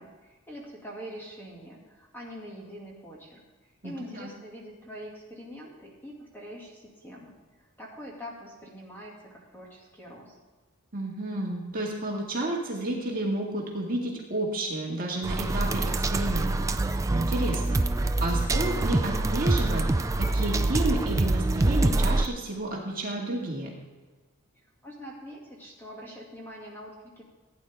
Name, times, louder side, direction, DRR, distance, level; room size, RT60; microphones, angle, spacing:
voice 1, 0.0-3.4 3.8-10.4 24.8-27.2, equal, 10° left, -3 dB, 2.3 m, -44 dB
voice 2, 3.8-4.3 10.9-16.7 17.1-19.8 20.2-23.7, right 2 dB, 40° right, -2 dB, 2.0 m, -31 dB
sound 1, 15.2-22.3, right 2 dB, 15° right, 0.3 m, -25 dB
16.0 x 9.4 x 3.6 m, 1.3 s
head